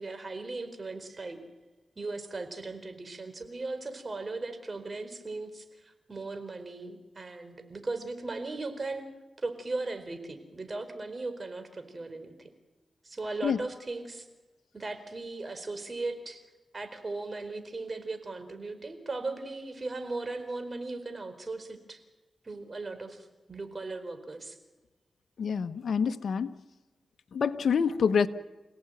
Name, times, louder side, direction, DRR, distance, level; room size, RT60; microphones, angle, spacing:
voice 1, 0.0-1.4 2.0-9.1 9.4-12.5 13.0-14.3 14.7-16.4 16.7-22.0 22.4-24.6, right 3 dB, 45° right, 9 dB, 4.5 m, -37 dB
voice 2, 25.4-26.5 27.3-28.3, left 6 dB, 80° left, 10 dB, 1.0 m, -26 dB
27.5 x 17.5 x 9.2 m, 1.2 s
cardioid pair, 55°, 0 cm